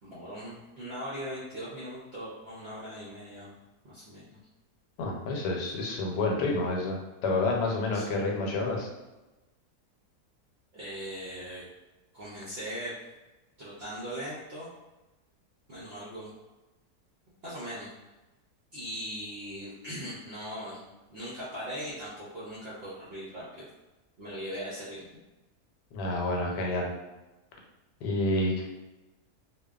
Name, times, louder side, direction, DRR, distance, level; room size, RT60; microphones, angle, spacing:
voice 1, 0.0-3.5 3.8-4.4 7.9-8.1 10.7-11.6 12.1-12.9 13.6-14.7 15.7-16.3 17.4-17.9 18.7-20.8 21.1-23.7 24.2-25.0, equal, 60° right, -8 dB, 0.6 m, -39 dB
voice 2, 5.0-8.9 25.9-26.9 28.0-28.6, left 2 dB, 90° left, 0 dB, 1.2 m, -29 dB
2.7 x 2.2 x 2.3 m, 1.1 s
omnidirectional pair, 1.7 m